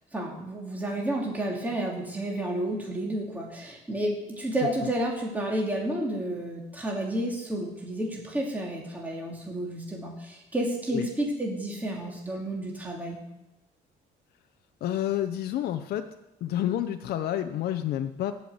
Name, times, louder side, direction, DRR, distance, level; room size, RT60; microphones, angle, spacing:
voice 1, 0.1-13.2, right 1 dB, 10° right, -2 dB, 2.8 m, -31 dB
voice 2, 14.8-16.1 16.4-18.3, left 11 dB, 70° left, 7 dB, 0.8 m, -29 dB
16.5 x 5.8 x 7.9 m, 0.94 s
cardioid pair, 110°, 17 cm